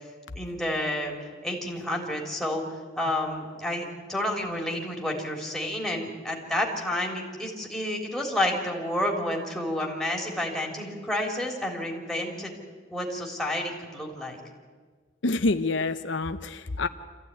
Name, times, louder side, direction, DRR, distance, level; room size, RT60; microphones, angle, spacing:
voice 1, 0.3-1.2 1.4-2.6 3.0-12.6 12.9-14.4, left 1 dB, ahead, -1 dB, 3.7 m, -30 dB
voice 2, 15.2-16.9, left 2 dB, 75° left, 9 dB, 0.8 m, -27 dB
26.0 x 15.5 x 9.8 m, 1.5 s
head